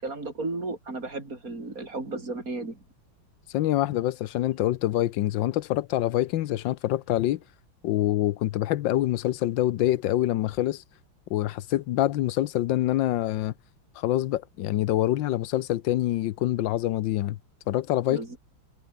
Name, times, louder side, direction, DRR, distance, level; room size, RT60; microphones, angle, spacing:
voice 1, 0.0-2.8 18.1-18.4, right 3 dB, 45° right, 5.9 m, -34 dB
voice 2, 3.5-7.4 7.8-10.8 11.3-13.5 14.0-17.4 17.7-18.2, left 14 dB, 75° left, 1.4 m, -25 dB
omnidirectional pair, 2.2 m